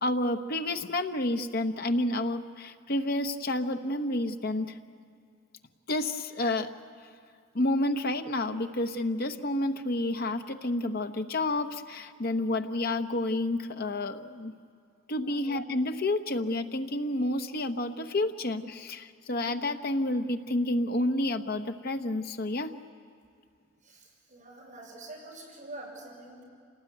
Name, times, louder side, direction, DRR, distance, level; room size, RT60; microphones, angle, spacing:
voice 1, 0.0-4.8 5.9-6.7 7.5-14.5 15.1-22.7, left 1 dB, 50° left, 6 dB, 1.0 m, -30 dB
voice 2, 23.8-26.4, right 2 dB, 40° right, -3 dB, 7.5 m, -46 dB
27.0 x 19.0 x 9.2 m, 2.3 s
head